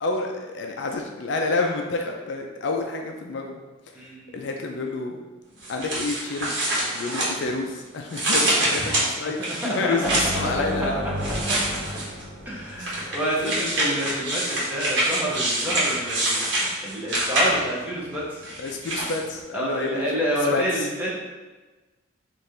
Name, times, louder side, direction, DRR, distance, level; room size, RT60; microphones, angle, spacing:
voice 1, 0.0-3.6 4.3-5.2 5.7-6.5 6.9-9.4 9.6-11.1 13.4-13.7 18.6-20.3 20.5-20.6, left 3 dB, 60° left, 2 dB, 0.4 m, -28 dB
voice 2, 3.9-4.4 8.6-8.9 9.2-10.6 12.5-18.4 19.5-21.1, equal, 10° right, -6 dB, 0.8 m, -29 dB
sound 1, 5.6-7.7 8.1-10.5 11.2-12.2 12.8-17.8 18.4-19.2, right 1 dB, 60° right, 1.1 m, -25 dB
sound 2, 10.0-13.6, left 1 dB, 40° right, 1.3 m, -33 dB
3.2 x 2.4 x 4.3 m, 1.2 s
head